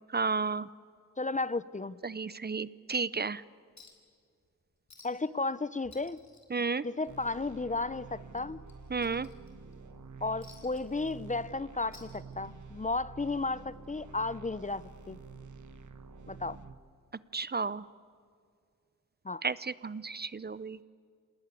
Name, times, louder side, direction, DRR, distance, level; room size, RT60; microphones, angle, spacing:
voice 1, 0.1-0.7 2.0-3.4 6.5-6.8 8.9-9.3 17.3-17.9 19.4-20.8, right 4 dB, 35° right, 18 dB, 0.6 m, -32 dB
voice 2, 1.2-2.0 5.0-6.2 6.8-8.6 10.2-15.2 16.3-16.6 19.2-19.4, left 3 dB, 25° left, 18 dB, 0.5 m, -34 dB
Chink clink, 3.8-4.1 4.4-4.5 4.9-5.4 5.7-7.4 7.7-7.9 8.3-9.7 10.4-11.5 11.8-12.7 13.8-13.9, left 4 dB, 65° left, 4.1 m, -56 dB
sound 1, 7.1-16.7, right 4 dB, 75° right, 1.5 m, -49 dB
26.5 x 19.0 x 9.8 m, 2.2 s
wide cardioid pair, 105°, 30 cm